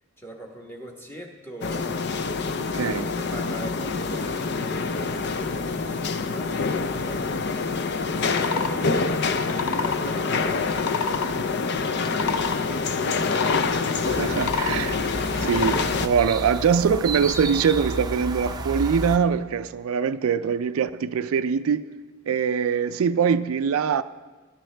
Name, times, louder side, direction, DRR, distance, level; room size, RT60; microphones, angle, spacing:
voice 1, 0.2-1.9 2.8-11.3 11.7-13.3, right 1 dB, 10° left, 1 dB, 1.2 m, -41 dB
sound 1, 1.6-16.1, left 4 dB, 50° left, 0.5 m, -26 dB
voice 2, 2.7-3.1 14.2-15.0 15.3-21.8 22.3-24.0, right 6 dB, 75° right, 12 dB, 0.4 m, -23 dB
sound 2, 8.2-8.7 9.4-10.0 10.7-11.3 11.9-12.6 13.2-13.7 14.2-14.8 15.4-15.9, left 5 dB, 85° left, 0.7 m, -29 dB
sound 3, 14.0-19.2, right 2 dB, 20° right, 0.5 m, -32 dB
19.0 x 11.0 x 3.3 m, 1.3 s
head